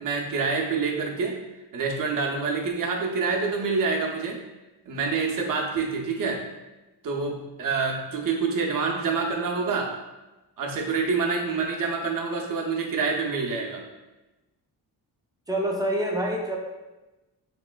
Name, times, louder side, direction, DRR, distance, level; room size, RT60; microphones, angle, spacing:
voice 1, 0.0-1.4 1.7-4.4 4.9-6.4 7.0-9.9 10.6-13.8, right 4 dB, 55° right, 0 dB, 0.6 m, -27 dB
voice 2, 15.5-16.6, right 1 dB, 10° right, 0 dB, 0.4 m, -26 dB
3.1 x 2.9 x 2.2 m, 1.1 s
cardioid pair, 105°, 41 cm